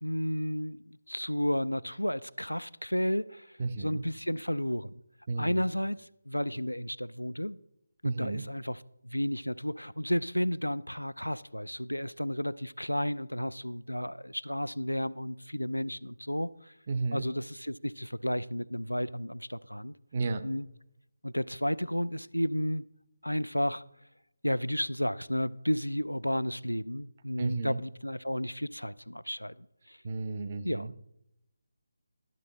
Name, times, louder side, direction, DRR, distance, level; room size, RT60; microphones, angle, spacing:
voice 1, 0.0-4.9 5.4-7.6 8.0-16.7 17.1-19.9 20.4-20.7 21.2-22.9 23.2-23.8 24.4-30.0 30.6-30.9, equal, 90° left, 0.3 m, -32 dB
voice 2, 3.6-4.1 5.3-5.6 8.0-8.5 16.9-17.3 20.1-20.5 27.4-27.8 30.0-30.9, right 3 dB, 35° right, 0.6 m, -33 dB
12.0 x 6.6 x 4.0 m
figure-of-eight pair, 150°, 0 cm